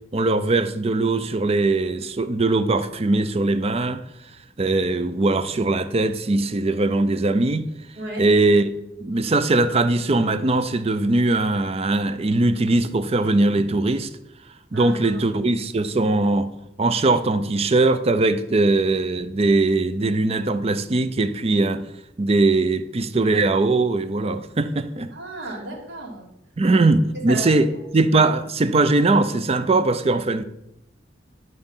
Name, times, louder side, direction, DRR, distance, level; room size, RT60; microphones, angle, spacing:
voice 1, 0.1-4.0 4.6-7.6 8.2-8.7 9.0-14.1 14.7-16.5 16.8-21.8 22.2-25.1 26.6-27.7 27.9-30.4, right 2 dB, 35° right, 0.5 m, -20 dB
voice 2, 8.0-8.3 14.7-15.2 25.1-26.3 26.7-26.8 27.1-27.6, right 1 dB, 65° right, 2.5 m, -34 dB
11.0 x 3.9 x 5.6 m
head